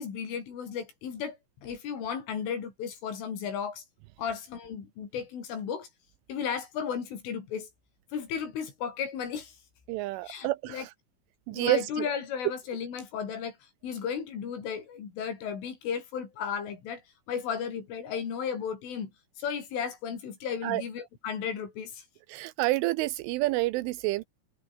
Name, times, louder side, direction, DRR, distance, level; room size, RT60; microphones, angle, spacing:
voice 1, 0.0-3.8 4.2-5.9 6.3-7.7 8.1-9.6 10.2-10.9 11.5-13.6 13.8-17.0 17.3-19.1 19.4-22.0, left 7 dB, 75° left, 7.0 m, -34 dB
voice 2, 9.9-10.9 11.5-12.1 20.6-20.8 22.3-24.3, right 19 dB, 85° right, 3.1 m, -28 dB
omnidirectional pair, 5.8 m